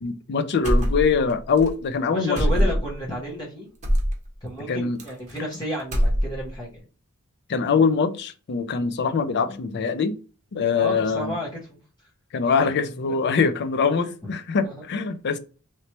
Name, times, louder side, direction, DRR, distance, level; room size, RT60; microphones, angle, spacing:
voice 1, 0.0-2.6 4.7-5.0 7.5-10.2 10.5-11.3 12.3-15.4, left 5 dB, 50° left, 0.4 m, -23 dB
sound 1, 0.6-1.3 1.6-1.7 2.4-3.0 3.8-4.2 5.0-5.5 5.8-6.6, equal, 35° right, 1.0 m, -22 dB
voice 2, 2.1-3.7 4.4-6.8 10.7-11.5 12.4-12.8 13.2-13.3 14.6-14.7, equal, 20° left, 1.1 m, -32 dB
3.1 x 3.0 x 2.9 m
head